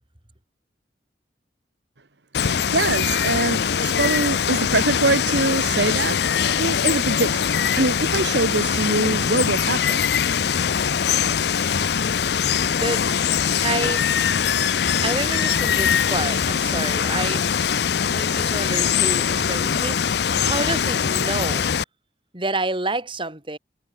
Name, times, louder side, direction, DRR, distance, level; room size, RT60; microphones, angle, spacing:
Water, 2.3-21.8, left 7 dB, 65° left, 0.5 m, -22 dB
voice 1, 2.4-7.5 7.8-10.0, right 2 dB, 75° right, 1.8 m, -24 dB
voice 2, 12.7-13.0 13.6-14.1 15.0-17.5 18.1-20.1 20.4-21.7 22.3-23.6, right 2 dB, 30° right, 4.1 m, -28 dB
head